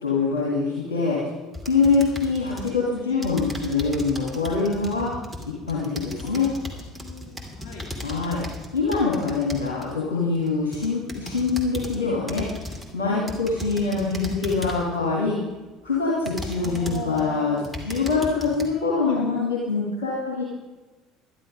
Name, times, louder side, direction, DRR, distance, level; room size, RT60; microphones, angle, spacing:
voice 1, 0.0-1.2 1.7-5.1 5.7-6.5 8.0-8.4 8.7-12.5 12.9-15.4 15.8-20.4, left 4 dB, 75° left, -5 dB, 2.2 m, -24 dB
sound 1, 1.5-2.8 3.2-9.9 10.5-12.0 12.3-12.9 13.3-14.9 15.5-15.6 16.3-17.2 17.6-18.7, left 1 dB, 5° right, 2.6 m, -36 dB
voice 2, 1.6-2.0 6.1-7.9 9.2-9.3 13.1-13.3 16.6-17.7 18.1-18.6 19.0-19.2, left 4 dB, 55° left, -2 dB, 3.9 m, -39 dB
11.5 x 11.0 x 5.2 m, 1.2 s
figure-of-eight pair, 60°, 0 cm